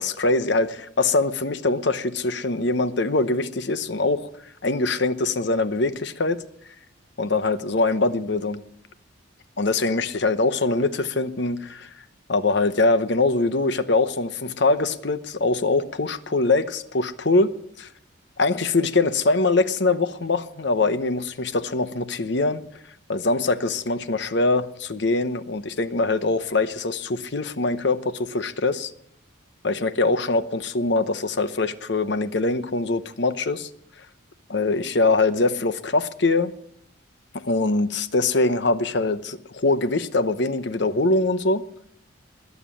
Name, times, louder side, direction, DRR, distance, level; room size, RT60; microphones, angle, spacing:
voice 1, 0.0-4.3 4.6-6.4 7.2-8.6 9.6-11.9 12.3-17.5 17.8-17.9 18.4-22.6 23.1-28.9 29.6-33.7 34.5-36.5 37.4-41.6, left 3 dB, 55° left, 12 dB, 0.9 m, -23 dB
21.0 x 7.3 x 7.6 m, 0.71 s
head